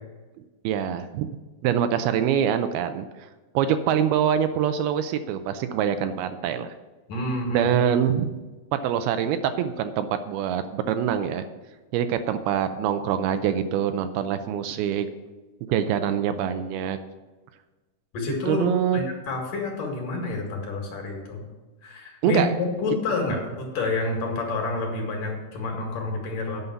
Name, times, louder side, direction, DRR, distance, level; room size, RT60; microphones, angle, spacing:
voice 1, 0.6-1.3 1.6-3.0 3.6-6.7 7.5-8.3 8.7-11.4 11.9-15.1 15.7-17.0 18.3-19.0 22.2-22.5, right 9 dB, 80° right, 9 dB, 2.4 m, -24 dB
voice 2, 7.1-7.7 18.1-18.7 18.9-21.5 21.8-26.6, left 3 dB, 60° left, 1 dB, 3.1 m, -28 dB
9.5 x 5.5 x 8.2 m, 1.2 s
omnidirectional pair, 4.6 m